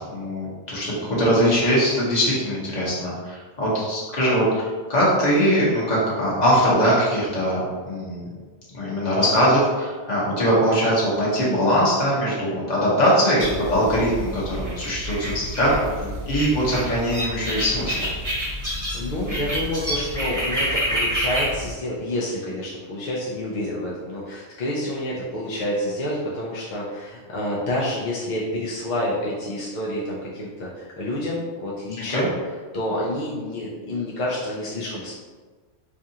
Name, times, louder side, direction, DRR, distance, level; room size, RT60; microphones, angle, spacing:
voice 1, 0.1-7.6 7.8-8.2 8.7-15.8 16.2-18.1 32.0-32.3, equal, 35° left, -7 dB, 1.2 m, -21 dB
sound 1, 13.4-21.7, equal, 15° right, 1.1 m, -28 dB
voice 2, 15.8-16.2 18.6-32.3 32.7-35.1, left 1 dB, 55° left, -5 dB, 0.5 m, -28 dB
4.7 x 2.4 x 2.7 m, 1.4 s
omnidirectional pair, 1.3 m